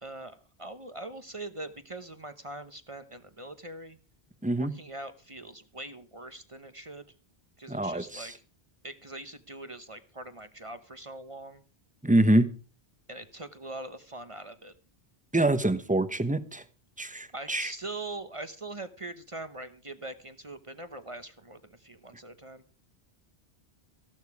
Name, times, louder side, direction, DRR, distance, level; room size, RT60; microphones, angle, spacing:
voice 1, 0.0-4.0 4.6-7.0 7.6-8.3 8.8-11.6 13.1-14.7 17.3-22.6, right 2 dB, 30° right, 1.0 m, -42 dB
voice 2, 7.7-8.3 12.0-12.5 15.3-16.6 17.0-17.7, right 1 dB, 10° right, 1.0 m, -25 dB
15.0 x 12.0 x 4.8 m
omnidirectional pair, 1.1 m